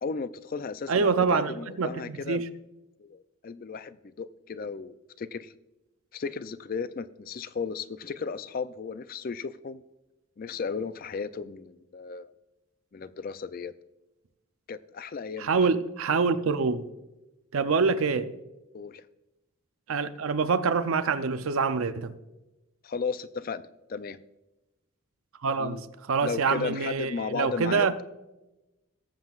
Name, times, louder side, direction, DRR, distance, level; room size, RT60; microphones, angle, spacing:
voice 1, 0.0-2.4 3.0-5.5 6.1-9.8 10.4-12.3 12.9-13.7 14.7-15.7 18.7-19.0 22.8-24.2 25.6-25.8 26.2-27.9, left 5 dB, 40° left, 0.3 m, -35 dB
voice 2, 0.9-2.5 15.4-16.9 17.5-18.3 19.9-22.1 25.4-27.9, right 5 dB, 70° right, 0.5 m, -26 dB
18.5 x 7.6 x 2.4 m
head